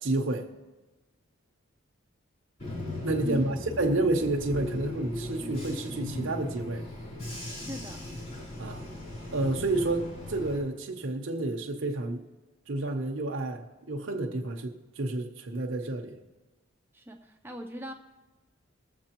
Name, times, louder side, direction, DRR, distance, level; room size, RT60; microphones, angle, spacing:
voice 1, 0.0-0.5 3.0-6.9 8.6-8.8 9.3-12.2 12.7-16.2, right 2 dB, 65° right, 0.8 m, -30 dB
Bus / Engine, 2.6-10.6, left 1 dB, 45° left, 3.8 m, -38 dB
voice 2, 3.2-3.6 7.6-8.1 16.9-17.9, equal, 10° right, 0.5 m, -39 dB
21.5 x 7.5 x 3.0 m
head